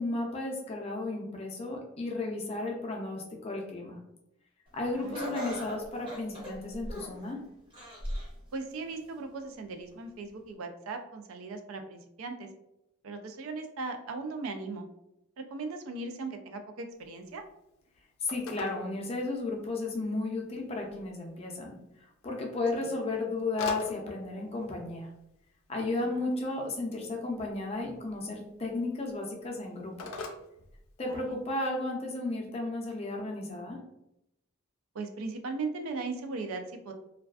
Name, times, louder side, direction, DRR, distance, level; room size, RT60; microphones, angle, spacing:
voice 1, 0.0-4.0 4.7-7.4 18.2-21.8 22.2-25.1 25.7-30.1 31.0-33.8, left 2 dB, 30° left, 0 dB, 0.4 m, -34 dB
Laughter, 5.1-7.3 7.7-8.4 8.9-9.0 9.9-10.0, equal, 25° right, 0.6 m, -38 dB
voice 2, 8.5-12.5 13.0-14.9 15.4-17.4 22.7-22.8 26.2-26.3 31.1-31.4 34.9-36.9, right 3 dB, 85° right, 6 dB, 0.4 m, -38 dB
Telephone, 16.9-31.4, left 3 dB, 90° left, 0.4 m, -47 dB
2.4 x 2.2 x 2.3 m, 0.85 s
head